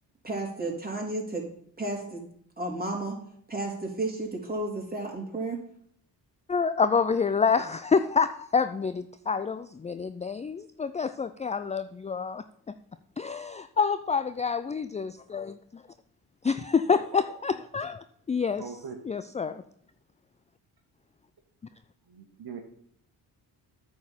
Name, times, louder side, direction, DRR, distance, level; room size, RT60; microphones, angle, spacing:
voice 1, 0.2-1.5 1.8-2.2 2.6-3.2 3.5-5.6, right 2 dB, 20° right, -1 dB, 3.8 m, -32 dB
voice 2, 6.5-12.4 13.2-15.8 16.4-18.6 19.1-19.6, left 5 dB, 15° left, 12 dB, 0.4 m, -27 dB
voice 3, 16.9-17.3 18.6-19.0 22.1-22.6, right 6 dB, 55° right, 4 dB, 1.7 m, -41 dB
9.3 x 4.6 x 7.3 m, 0.67 s
hypercardioid pair, 50°, 47 cm